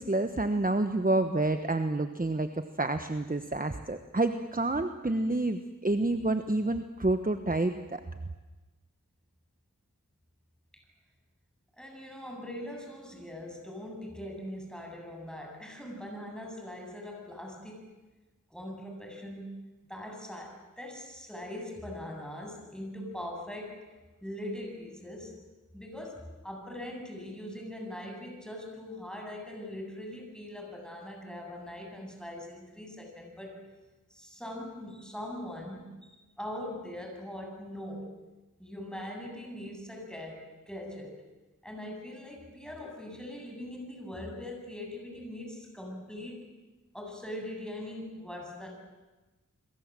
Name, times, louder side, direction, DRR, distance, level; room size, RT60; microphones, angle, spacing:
voice 1, 0.0-8.0, right 2 dB, 25° right, 8 dB, 1.1 m, -29 dB
voice 2, 11.8-17.8 18.5-19.5 19.9-23.9 24.2-25.3 25.7-33.6 34.1-38.1 38.6-41.1 41.6-46.5 46.9-48.7, left 1 dB, ahead, 1 dB, 8.0 m, -41 dB
29.5 x 22.5 x 7.7 m, 1.2 s
wide cardioid pair, 55°, 31 cm